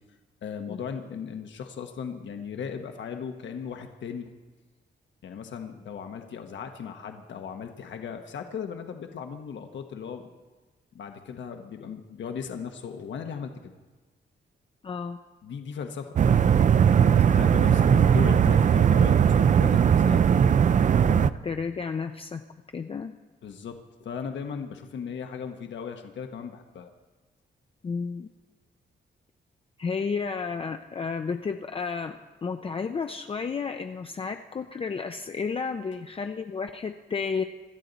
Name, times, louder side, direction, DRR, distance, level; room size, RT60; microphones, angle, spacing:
voice 1, 0.4-4.3 5.2-10.3 10.9-13.7 15.4-16.1 17.0-20.2 23.4-26.9, left 7 dB, 75° left, 5 dB, 1.1 m, -37 dB
voice 2, 14.8-15.2 21.0-22.4 22.7-23.2 27.8-28.3 29.8-37.4, left 5 dB, 30° left, 6 dB, 0.5 m, -32 dB
sound 1, 16.2-21.3, right 8 dB, 40° right, 0.4 m, -19 dB
25.5 x 12.5 x 4.0 m, 1.3 s
wide cardioid pair, 160°, 19 cm